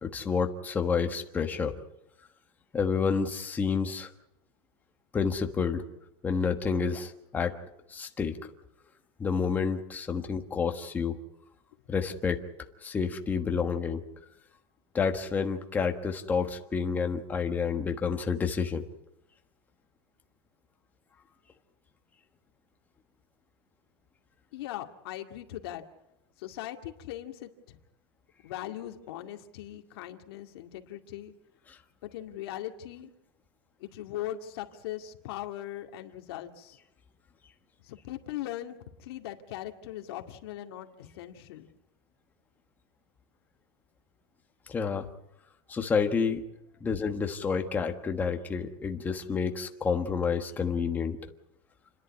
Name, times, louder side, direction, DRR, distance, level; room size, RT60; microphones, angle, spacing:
voice 1, 0.0-1.7 2.7-4.1 5.1-5.8 6.2-7.5 7.9-8.4 9.2-11.1 11.9-12.4 12.8-14.0 14.9-18.8 44.7-45.1 45.7-46.4 46.8-51.2, left 5 dB, 10° left, 4 dB, 1.3 m, -29 dB
voice 2, 24.5-25.8 26.4-27.8 28.4-31.3 32.0-33.1 33.8-36.8 37.9-41.7, left 13 dB, 60° left, 4 dB, 2.2 m, -40 dB
29.5 x 11.0 x 9.8 m, 0.88 s
supercardioid pair, 170°, 14 cm